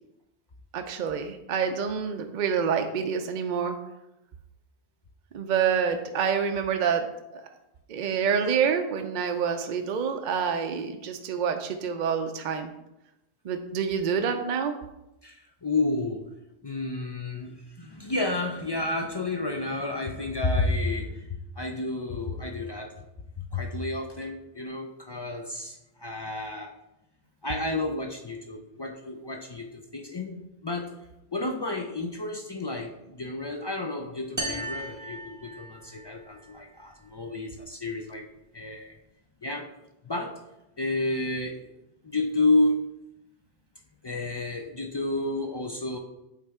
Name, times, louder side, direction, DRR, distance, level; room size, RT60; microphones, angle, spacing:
voice 1, 0.7-3.8 5.3-7.1 7.3-7.4 7.9-12.7 13.4-14.7, right 7 dB, 60° right, 6 dB, 0.6 m, -27 dB
voice 2, 15.2-16.3 16.6-23.0 23.4-26.7 27.4-30.9 31.3-38.3 38.5-38.9 39.4-39.7 40.0-40.4 40.8-41.7 42.0-42.8 44.0-46.0, left 2 dB, 40° left, 2 dB, 0.3 m, -30 dB
sound 1, 34.4-36.1, right 1 dB, 20° right, 0.6 m, -35 dB
8.3 x 3.3 x 3.5 m, 0.90 s
omnidirectional pair, 1.0 m